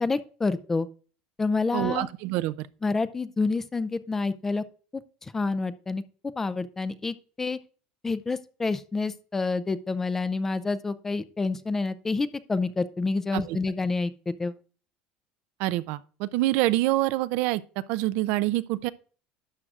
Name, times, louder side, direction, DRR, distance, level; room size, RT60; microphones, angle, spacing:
voice 1, 0.0-0.9 1.4-2.1 2.8-4.6 4.9-6.0 6.4-7.6 8.0-14.6, left 3 dB, 15° left, 0.4 m, -28 dB
voice 2, 1.7-2.7 13.3-13.6 15.6-17.6 17.9-18.9, right 17 dB, 65° right, 0.4 m, -26 dB
12.0 x 7.8 x 2.4 m
cardioid pair, 155°, 3 cm